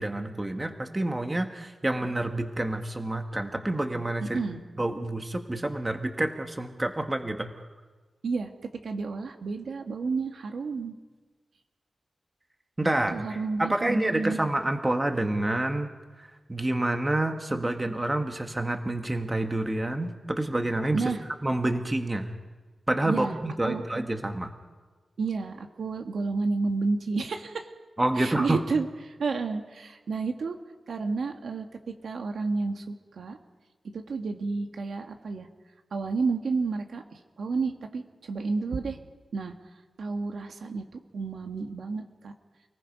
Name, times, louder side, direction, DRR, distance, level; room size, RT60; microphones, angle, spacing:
voice 1, 0.0-4.4 4.8-7.5 12.8-15.9 16.5-21.0 21.4-22.3 22.9-24.5 28.0-28.6, right 1 dB, 15° right, 5 dB, 1.6 m, -28 dB
voice 2, 4.2-4.6 8.2-8.5 8.8-10.9 13.1-14.5 20.9-21.2 23.0-23.4 23.6-23.8 25.2-27.7 28.1-30.5 30.9-31.7 32.0-33.4 33.9-35.5 35.9-39.0 39.3-39.5 40.0-40.8 41.1-42.3, right 4 dB, 80° right, 4 dB, 1.7 m, -30 dB
29.5 x 18.5 x 5.4 m, 1.3 s
wide cardioid pair, 125°, 0 cm